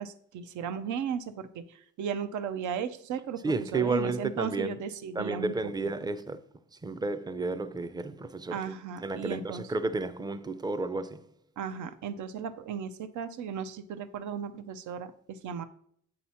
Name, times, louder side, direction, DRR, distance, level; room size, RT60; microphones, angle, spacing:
voice 1, 0.0-5.5 6.0-6.1 8.5-9.7 11.6-15.6, right 7 dB, 75° right, 0.7 m, -36 dB
voice 2, 3.4-4.8 5.2-6.4 6.8-8.6 9.0-11.3, right 3 dB, 15° right, 0.5 m, -32 dB
7.5 x 2.9 x 5.6 m
cardioid pair, 90°, 30 cm